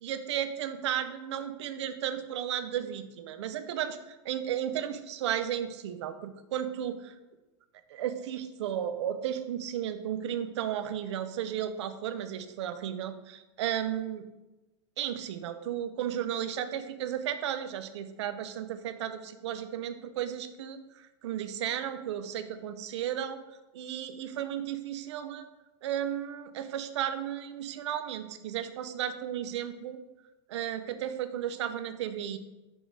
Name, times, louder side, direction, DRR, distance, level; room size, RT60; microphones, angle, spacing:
voice 1, 0.0-7.1 7.9-14.3 15.0-23.4 23.7-25.5 25.8-30.0 30.5-32.4, right 10 dB, 75° right, 10 dB, 0.6 m, -34 dB
6.2 x 3.8 x 4.6 m, 1.1 s
supercardioid pair, 170°, 15 cm